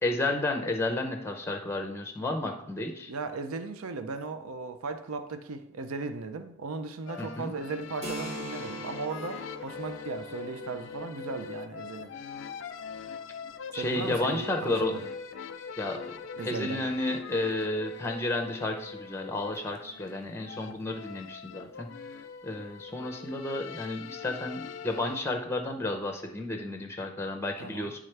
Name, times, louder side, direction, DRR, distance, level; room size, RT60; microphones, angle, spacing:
voice 1, 0.0-3.1 7.2-7.5 13.7-14.9 15.8-16.2 16.4-21.9 22.4-28.0, left 2 dB, 10° left, 4 dB, 0.6 m, -32 dB
voice 2, 3.1-12.1 13.7-15.0 16.4-16.8 20.5-20.8 27.6-27.9, right 4 dB, 85° right, 8 dB, 0.6 m, -37 dB
sound 1, 7.1-25.2, left 6 dB, 60° left, 0.4 m, -42 dB
Keyboard (musical), 8.0-15.4, right 1 dB, 30° right, 0.7 m, -45 dB
10.5 x 3.6 x 3.3 m, 0.80 s
head